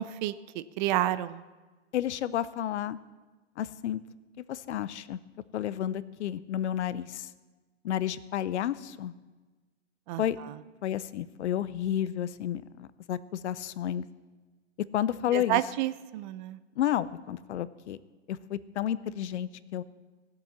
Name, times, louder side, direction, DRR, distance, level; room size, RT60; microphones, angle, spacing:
voice 1, 0.0-1.4 10.1-10.6 15.3-16.6, right 14 dB, 40° right, 15 dB, 0.6 m, -30 dB
voice 2, 1.9-3.0 3.6-4.0 4.5-5.2 5.5-7.3 7.8-9.1 10.2-10.4 10.8-13.2 13.4-14.1 14.9-15.6 16.8-18.0 18.3-19.8, left 11 dB, 70° left, 17 dB, 0.7 m, -31 dB
16.5 x 7.9 x 7.1 m, 1.3 s
hypercardioid pair, 120°, 36 cm